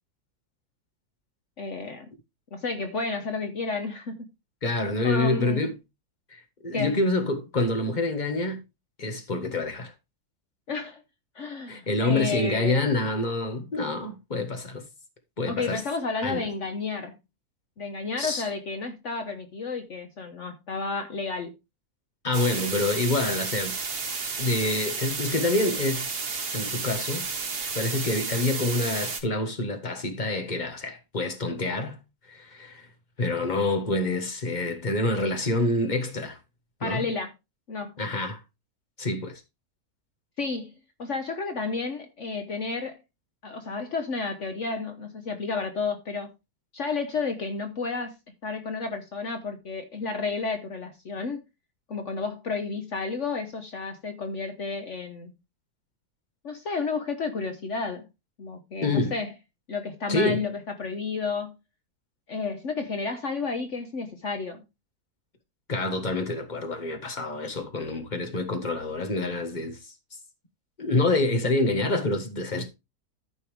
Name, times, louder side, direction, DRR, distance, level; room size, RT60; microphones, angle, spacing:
voice 1, 1.6-2.1 2.5-4.3 5.0-5.7 6.7-7.0 10.7-11.0 11.3-12.9 15.5-17.2 17.8-21.5 36.8-37.3 37.7-37.9 40.4-40.7 41.0-43.0 43.4-46.3 46.7-48.1 48.4-51.4 51.9-55.3 56.4-58.0 58.4-59.3 59.7-61.5 62.3-64.6, left 4 dB, 55° left, 1.3 m, -31 dB
voice 2, 4.6-5.8 6.3-8.6 9.0-9.9 11.7-14.9 15.4-15.8 16.2-16.5 18.2-18.5 22.2-23.8 24.4-26.1 26.5-27.3 27.7-32.0 32.3-32.9 33.2-36.4 36.8-37.1 38.0-38.4 39.0-39.4 58.8-59.1 60.1-60.5 65.7-69.9 70.8-72.7, left 2 dB, 30° left, 1.7 m, -27 dB
sound 1, 22.3-29.2, right 5 dB, 90° right, 2.3 m, -32 dB
14.0 x 5.5 x 3.5 m
omnidirectional pair, 1.6 m